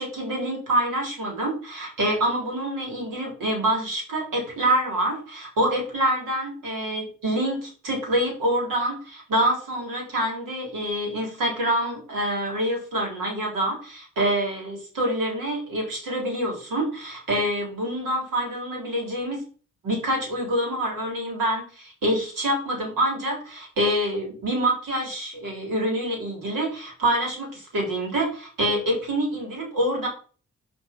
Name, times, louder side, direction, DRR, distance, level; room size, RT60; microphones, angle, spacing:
voice 1, 0.0-19.4 19.8-30.1, right 1 dB, 85° right, 1 dB, 3.9 m, -26 dB
6.3 x 5.1 x 6.0 m, 0.39 s
supercardioid pair, 50°, 32 cm